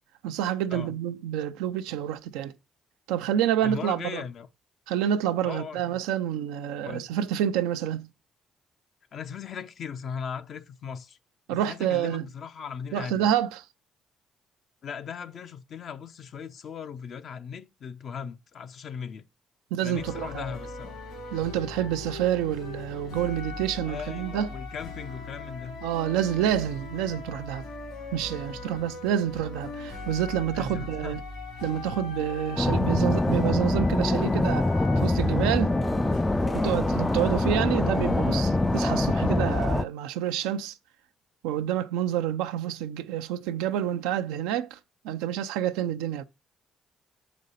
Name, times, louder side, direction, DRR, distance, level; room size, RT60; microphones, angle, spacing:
voice 1, 0.2-2.5 3.1-4.2 4.9-8.1 11.5-12.2 12.9-13.6 19.7-20.4 21.3-24.5 25.8-27.6 28.1-31.2 31.6-35.8 36.5-40.8 41.4-44.8 45.0-46.2, right 10 dB, 85° right, 0.5 m, -28 dB
voice 2, 3.6-4.5 5.4-6.0 6.8-7.1 9.1-11.2 11.5-13.3 14.8-19.2 19.8-21.0 23.9-25.8 30.5-31.2, left 7 dB, 60° left, 0.6 m, -38 dB
sound 1, 19.9-39.7, left 2 dB, 75° left, 2.6 m, -39 dB
sound 2, 32.6-39.8, left 2 dB, 15° left, 0.3 m, -24 dB
6.5 x 5.2 x 4.1 m
supercardioid pair, 60°, 0 cm